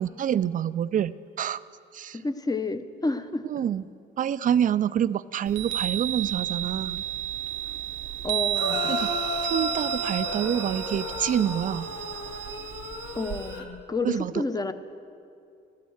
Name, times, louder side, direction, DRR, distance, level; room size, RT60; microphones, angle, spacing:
voice 1, 0.0-1.6 1.9-2.2 3.5-3.8 4.2-7.1 8.9-11.9 14.1-14.4, right 9 dB, 45° right, 16 dB, 0.4 m, -27 dB
voice 2, 2.1-3.6 8.2-9.0 13.1-14.7, left 3 dB, 20° left, 10 dB, 0.7 m, -30 dB
Chime, 5.5-13.6, right 12 dB, 70° right, 0.7 m, -32 dB
sound 1, 8.5-13.7, left 3 dB, 60° left, 1.5 m, -33 dB
12.0 x 9.5 x 7.8 m, 2.5 s
cardioid pair, 90°, 20 cm